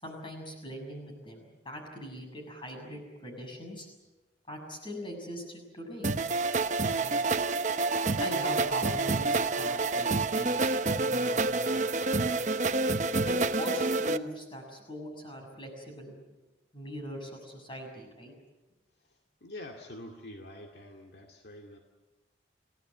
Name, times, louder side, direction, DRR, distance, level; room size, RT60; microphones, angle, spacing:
voice 1, 0.0-3.9 4.5-6.1 6.9-7.1 8.2-12.1 13.3-16.2 16.7-18.3, equal, 25° left, 2 dB, 6.7 m, -41 dB
sound 1, 6.0-14.2, right 3 dB, 40° right, 0.8 m, -28 dB
voice 2, 19.1-21.8, left 1 dB, 60° left, 2 dB, 2.3 m, -46 dB
29.0 x 17.5 x 9.5 m, 1.1 s
head